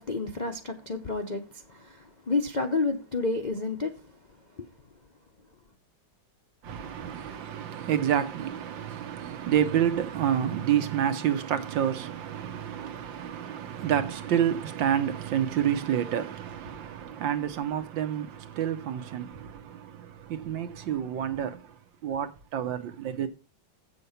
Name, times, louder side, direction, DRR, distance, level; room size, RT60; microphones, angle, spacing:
voice 1, 0.0-1.4 1.7-1.8 2.3-3.9, left 3 dB, 50° left, 0.5 m, -29 dB
voice 2, 6.6-21.8 22.0-23.3, right 9 dB, 80° right, 1.7 m, -29 dB
8.0 x 6.9 x 5.6 m
omnidirectional pair, 2.0 m